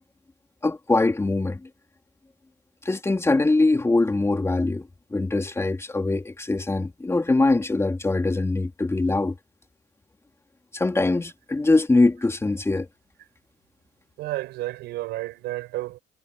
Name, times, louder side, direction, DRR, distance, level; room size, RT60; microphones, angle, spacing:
voice 1, 0.6-1.7 2.9-9.4 10.7-12.9, left 2 dB, 15° left, 3.4 m, -22 dB
voice 2, 14.2-16.0, right 17 dB, 85° right, 7.3 m, -31 dB
cardioid pair, 110°, 17 cm